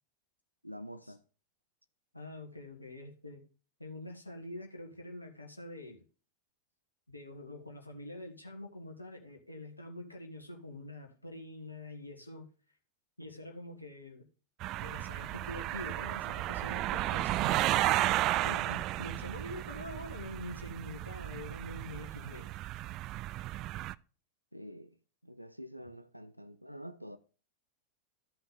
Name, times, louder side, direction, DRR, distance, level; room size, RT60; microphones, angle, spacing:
voice 1, 0.6-1.2 24.5-24.9 25.2-27.2, equal, 90° right, 0.5 m, -47 dB
voice 2, 2.1-3.4 3.8-6.0 7.1-12.5 13.2-14.3 14.8-17.6 17.9-18.0 18.4-22.5, left 1 dB, 85° left, 1.5 m, -45 dB
sound 1, 14.6-23.9, right 15 dB, 35° right, 0.3 m, -33 dB
13.0 x 5.8 x 3.6 m
figure-of-eight pair, 90°, 0 cm